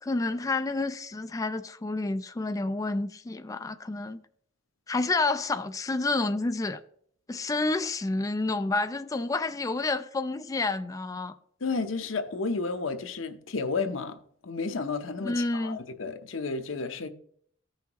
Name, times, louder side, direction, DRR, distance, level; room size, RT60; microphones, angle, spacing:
voice 1, 0.0-4.2 4.9-6.8 7.3-11.4 15.2-15.8, left 3 dB, 20° left, 0.3 m, -29 dB
voice 2, 11.6-17.1, left 4 dB, 85° left, 0.8 m, -32 dB
14.5 x 5.7 x 2.9 m
head